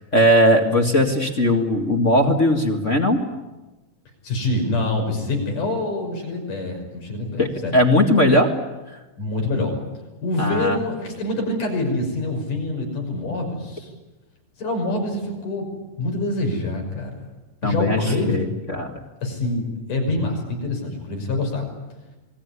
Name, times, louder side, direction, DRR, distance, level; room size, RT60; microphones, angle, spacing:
voice 1, 0.1-3.2 7.4-8.5 10.4-10.8 17.6-19.0, left 1 dB, 30° left, 3 dB, 1.8 m, -19 dB
voice 2, 4.2-7.8 9.2-9.8 10.2-13.9 14.6-15.7 16.0-17.2 17.6-18.4 19.2-21.7, left 2 dB, 90° left, 2 dB, 7.4 m, -25 dB
27.5 x 20.5 x 9.8 m, 1.1 s
omnidirectional pair, 3.6 m